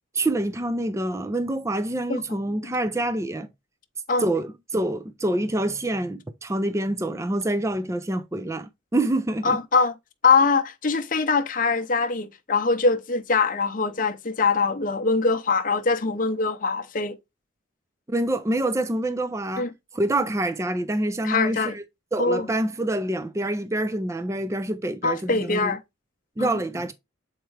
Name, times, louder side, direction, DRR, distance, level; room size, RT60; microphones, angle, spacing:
voice 1, 0.1-3.5 4.2-9.6 18.1-21.8 22.1-25.7 26.4-26.9, right 1 dB, 15° right, 0.4 m, -26 dB
voice 2, 9.4-9.9 10.2-17.2 19.6-19.7 21.2-21.7 22.2-22.4 25.0-25.8 26.4-26.6, left 4 dB, 40° left, 0.7 m, -23 dB
7.1 x 4.6 x 3.2 m
head